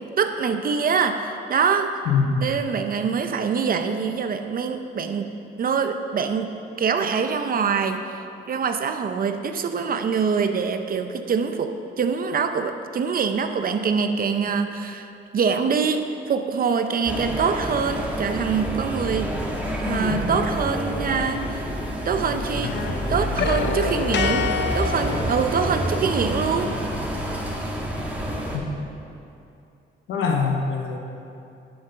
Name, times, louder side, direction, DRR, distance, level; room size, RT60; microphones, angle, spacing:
voice 1, 0.0-1.9 2.4-5.3 5.6-6.5 6.8-19.4 19.8-21.7 22.1-22.7 23.1-24.5 24.7-26.7, right 6 dB, 45° right, 7 dB, 0.7 m, -24 dB
voice 2, 2.1-2.6 28.5-28.7 30.1-31.0, left 5 dB, 85° left, 2 dB, 1.0 m, -23 dB
sound 1, 17.1-28.6, equal, 5° right, 1.8 m, -28 dB
sound 2, 21.2-22.3 22.6-26.1, left 5 dB, 65° left, 0.7 m, -29 dB
10.5 x 7.7 x 5.7 m, 2.7 s
cardioid pair, 90°, 20 cm